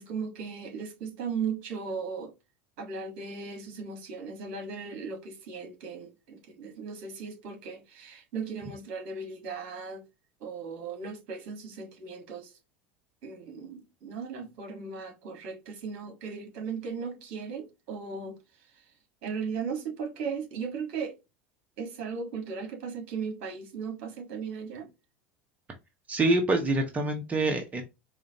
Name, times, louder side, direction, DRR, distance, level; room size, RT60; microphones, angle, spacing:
voice 1, 0.0-2.3 2.8-10.0 10.4-12.5 13.2-18.4 19.2-21.2 21.8-24.9, right 5 dB, 60° right, 1.6 m, -37 dB
voice 2, 26.1-27.8, right 2 dB, 25° right, 0.9 m, -26 dB
4.8 x 2.5 x 2.8 m
hypercardioid pair, 80°, 6 cm